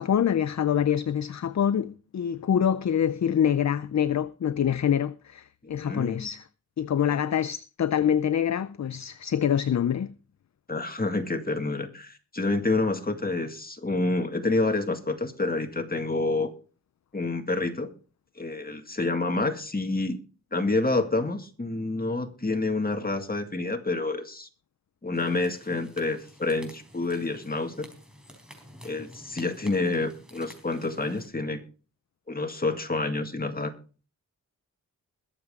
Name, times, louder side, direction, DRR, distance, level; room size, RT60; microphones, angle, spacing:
voice 1, 0.0-6.5 6.8-10.1, left 9 dB, 50° left, 0.5 m, -25 dB
voice 2, 5.8-6.3 7.1-7.2 10.7-16.5 17.1-17.9 18.4-20.2 20.5-24.5 25.0-27.9 28.8-31.6 32.3-33.7, left 2 dB, 25° left, 2.0 m, -28 dB
sound 1, 25.1-31.3, equal, ahead, 4.0 m, -50 dB
22.0 x 7.4 x 3.7 m
wide cardioid pair, 80°, 35 cm